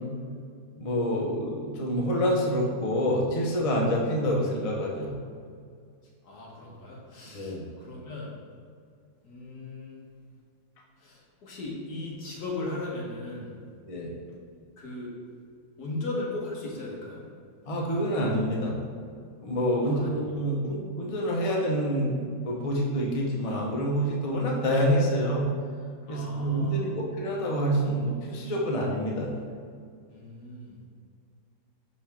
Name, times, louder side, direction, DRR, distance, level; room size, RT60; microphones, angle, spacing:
voice 1, 0.8-5.1 7.3-7.6 13.9-14.1 17.7-18.7 19.4-25.4 26.1-29.3, equal, 45° left, -2 dB, 0.4 m, -27 dB
voice 2, 6.2-8.3 9.2-10.0 11.0-13.5 14.8-15.1 15.8-17.2 19.8-20.2 26.1-26.9 30.1-30.8, left 2 dB, 60° left, -3 dB, 1.7 m, -37 dB
6.0 x 5.2 x 3.5 m, 2.2 s
omnidirectional pair, 2.0 m